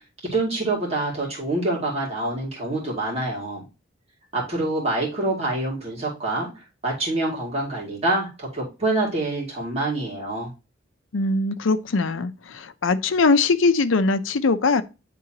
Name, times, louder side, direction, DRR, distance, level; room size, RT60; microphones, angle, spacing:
voice 1, 0.3-3.6 4.3-6.5 6.8-10.5, right 2 dB, 35° right, 2.3 m, -26 dB
voice 2, 11.1-14.8, left 3 dB, 80° left, 0.6 m, -21 dB
9.3 x 3.7 x 2.8 m
head